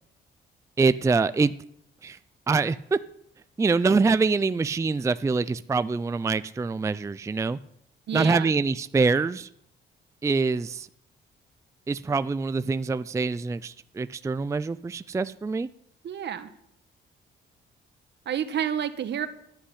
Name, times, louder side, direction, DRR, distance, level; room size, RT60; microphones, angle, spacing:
voice 1, 0.8-1.5 2.0-2.2 2.5-3.0 3.6-7.6 8.1-9.5 10.2-10.9 11.9-15.7, right 4 dB, 15° right, 14 dB, 0.4 m, -25 dB
voice 2, 8.1-8.5 16.0-16.5 18.2-19.3, right 9 dB, 60° right, 10 dB, 1.3 m, -29 dB
11.5 x 7.5 x 10.0 m, 0.73 s
cardioid pair, 90°, 20 cm